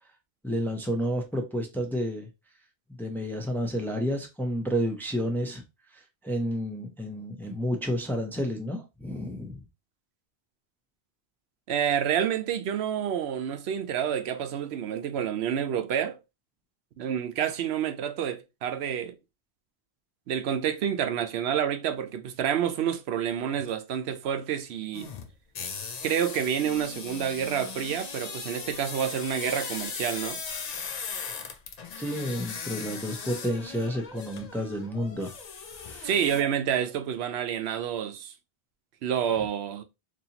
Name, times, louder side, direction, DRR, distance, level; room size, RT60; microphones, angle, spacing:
voice 1, 0.4-2.3 3.0-5.6 6.2-9.6 32.0-35.3 35.8-36.1, equal, ahead, 0.5 m, -30 dB
voice 2, 11.7-16.2 17.0-19.2 20.3-25.1 26.0-30.4 36.0-38.3 39.0-39.8, right 9 dB, 85° right, 0.8 m, -28 dB
sound 1, 24.9-36.4, left 5 dB, 50° left, 0.5 m, -38 dB
4.0 x 2.7 x 2.8 m
omnidirectional pair, 1.1 m